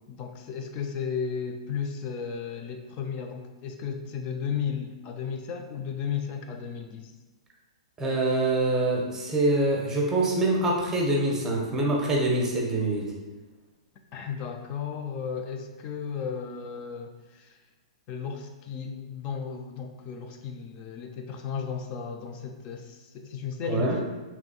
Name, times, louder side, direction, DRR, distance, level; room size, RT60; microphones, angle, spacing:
voice 1, 0.1-7.1 14.1-17.6 18.1-24.1, left 6 dB, 35° left, 4 dB, 0.3 m, -34 dB
voice 2, 8.0-13.1 23.7-24.0, right 2 dB, 15° right, -2 dB, 0.8 m, -25 dB
3.5 x 3.0 x 2.2 m, 1.2 s
hypercardioid pair, 115°, 3 cm